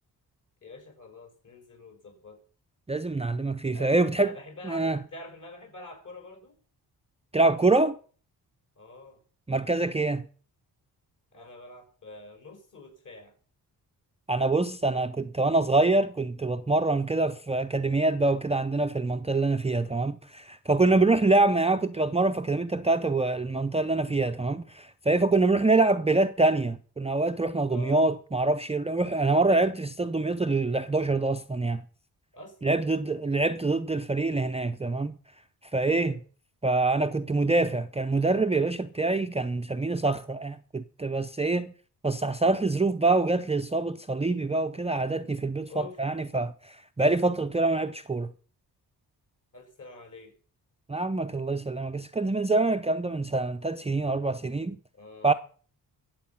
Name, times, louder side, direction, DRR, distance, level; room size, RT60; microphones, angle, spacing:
voice 1, 0.6-2.4 3.7-6.6 8.8-9.2 11.3-13.4 27.7-28.1 32.3-32.8 35.8-36.2 45.7-46.0 49.5-50.3 54.9-55.4, left 2 dB, 50° left, 5.6 m, -46 dB
voice 2, 2.9-4.3 4.6-5.0 7.3-8.0 9.5-10.3 14.3-31.8 32.6-35.1 35.7-36.1 36.6-41.7 42.0-48.3 50.9-54.8 55.2-55.3, right 3 dB, 15° right, 0.6 m, -25 dB
22.5 x 7.8 x 5.7 m
cardioid pair, 100°, 40 cm